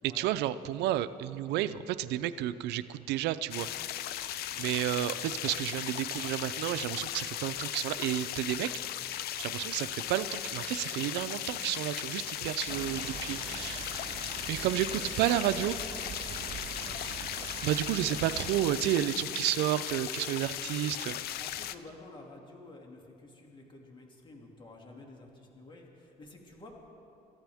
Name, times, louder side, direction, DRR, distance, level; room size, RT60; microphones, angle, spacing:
voice 1, 0.1-3.7 4.6-8.7 9.4-14.0 14.5-15.7 17.4-21.2, right 13 dB, 85° right, 13 dB, 0.5 m, -31 dB
sound 1, 3.5-21.8, left 12 dB, 70° left, 0.6 m, -37 dB
sound 2, 12.7-18.8, right 8 dB, 35° right, 0.4 m, -43 dB
voice 2, 15.0-15.4 16.8-17.0 20.9-26.7, left 2 dB, 30° left, 0 dB, 2.6 m, -51 dB
27.5 x 14.5 x 3.6 m, 2.8 s
cardioid pair, 110°, 17 cm